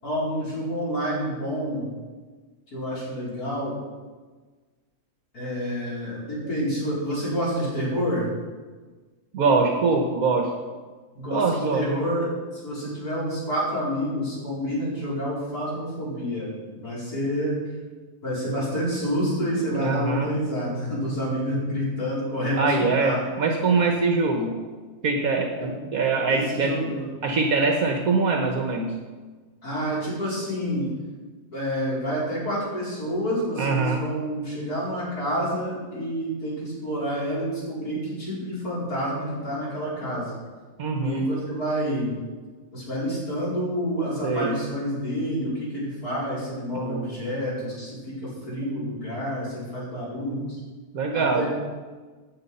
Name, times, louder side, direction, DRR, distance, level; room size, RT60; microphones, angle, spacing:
voice 1, 0.0-1.9 2.7-3.7 5.3-8.3 11.2-12.3 12.5-17.6 18.2-23.3 23.8-23.9 25.6-25.7 26.3-27.0 29.6-30.9 31.5-40.4 41.0-42.2 42.7-50.6 51.1-51.5, equal, 75° left, -7 dB, 5.5 m, -28 dB
voice 2, 9.3-10.5 11.3-11.9 19.7-20.3 22.6-24.5 25.0-26.8 27.2-28.9 33.6-34.0 40.8-41.2 44.2-44.6 46.7-47.1 50.9-51.4, right 4 dB, 70° right, 3 dB, 1.6 m, -23 dB
15.5 x 9.2 x 5.6 m, 1.4 s
omnidirectional pair, 1.6 m